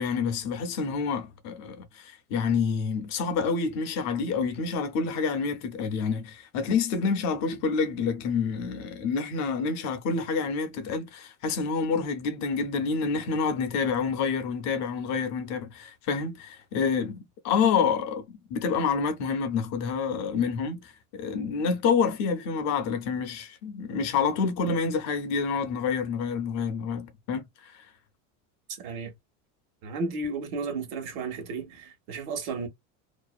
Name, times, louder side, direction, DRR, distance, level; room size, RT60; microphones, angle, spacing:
voice 1, 0.0-17.2 17.4-18.2 18.5-27.7, left 5 dB, 40° left, 0.5 m, -28 dB
voice 2, 28.7-29.1 29.8-32.7, right 3 dB, 70° right, 1.1 m, -33 dB
2.6 x 2.0 x 2.3 m
cardioid pair, 160°, 42 cm